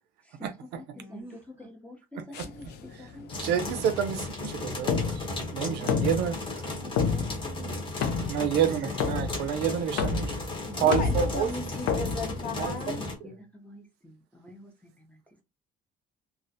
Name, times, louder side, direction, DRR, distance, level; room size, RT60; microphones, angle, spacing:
voice 1, 0.2-3.7 6.6-6.7 7.0-7.5 10.6-10.8 12.7-15.4, left 1 dB, 10° left, 0.5 m, -48 dB
voice 2, 0.9-1.7 5.6-6.4 6.6-8.4 8.9-9.0, right 2 dB, 15° right, 1.0 m, -48 dB
sound 1, 2.3-13.0, left 5 dB, 80° left, 0.5 m, -32 dB
sound 2, 3.3-13.2, left 2 dB, 30° left, 0.9 m, -35 dB
voice 3, 3.4-5.3 5.5-6.4 8.3-10.4 10.8-11.5 12.6-12.8, right 9 dB, 80° right, 0.4 m, -28 dB
voice 4, 10.8-13.0, left 3 dB, 55° left, 0.8 m, -34 dB
2.4 x 2.0 x 2.6 m
cardioid pair, 110°, 17 cm